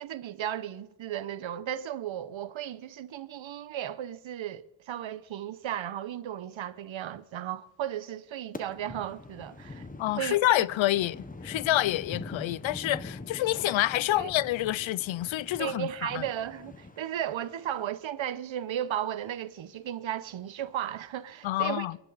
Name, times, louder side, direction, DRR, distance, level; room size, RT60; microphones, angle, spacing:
voice 1, 0.0-9.9 10.2-10.6 14.1-14.3 15.6-21.9, right 10 dB, 85° right, 1.0 m, -35 dB
sound 1, 8.5-17.9, left 2 dB, 20° left, 1.2 m, -44 dB
voice 2, 10.0-16.2 21.4-22.0, left 15 dB, 85° left, 0.5 m, -27 dB
23.0 x 11.0 x 4.1 m
cardioid pair, 90°, 45 cm